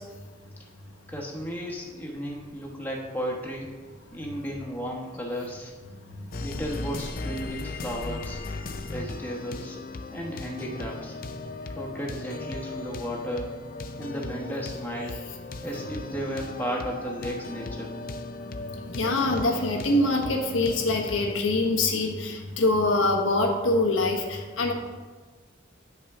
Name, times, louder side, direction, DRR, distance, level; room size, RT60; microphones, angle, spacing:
voice 1, 1.1-3.7 4.1-5.7 6.4-8.4 8.8-9.8 10.1-11.1 11.7-13.5 14.0-15.2 15.6-17.9, equal, 10° left, -3 dB, 1.1 m, -34 dB
sound 1, 6.3-21.3, left 2 dB, 45° left, 0.5 m, -37 dB
voice 2, 18.7-24.7, left 2 dB, 90° left, 1 dB, 1.1 m, -24 dB
9.6 x 5.7 x 3.6 m, 1.4 s
head